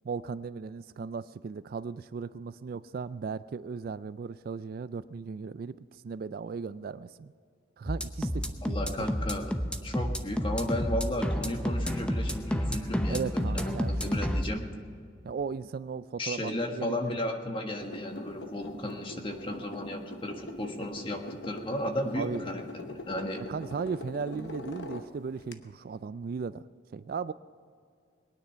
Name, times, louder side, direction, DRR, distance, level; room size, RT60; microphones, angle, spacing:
voice 1, 0.0-7.3 7.8-9.1 13.1-13.9 15.2-17.0 22.1-22.6 23.5-26.6 26.9-27.3, right 5 dB, 50° right, 15 dB, 0.3 m, -36 dB
sound 1, 7.9-14.4, equal, 5° left, 0.8 m, -30 dB
voice 2, 8.6-9.5 9.8-14.6 16.2-23.4, left 1 dB, 25° left, 3 dB, 1.5 m, -34 dB
sound 2, 17.8-25.5, left 2 dB, 60° left, 1.0 m, -43 dB
22.0 x 9.7 x 5.7 m, 2.2 s
head